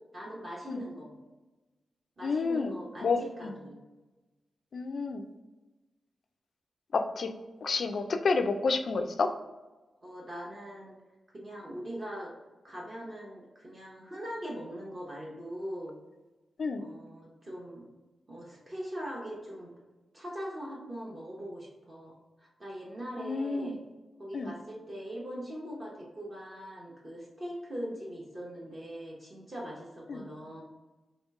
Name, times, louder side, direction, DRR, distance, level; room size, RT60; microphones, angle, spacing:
voice 1, 0.1-1.1 2.2-3.8 10.0-10.9 11.3-12.3 12.6-16.0 16.8-17.9 18.3-19.7 20.1-23.8 24.2-30.6, equal, 25° right, -4 dB, 0.7 m, -41 dB
voice 2, 2.2-2.7 3.0-3.5 4.7-5.2 6.9-7.3 7.6-9.3 16.6-16.8 23.2-23.7 24.3-24.5 30.1-30.2, left 4 dB, 50° left, 6 dB, 0.3 m, -29 dB
3.1 x 2.8 x 4.5 m, 1.2 s
wide cardioid pair, 175°, 0 cm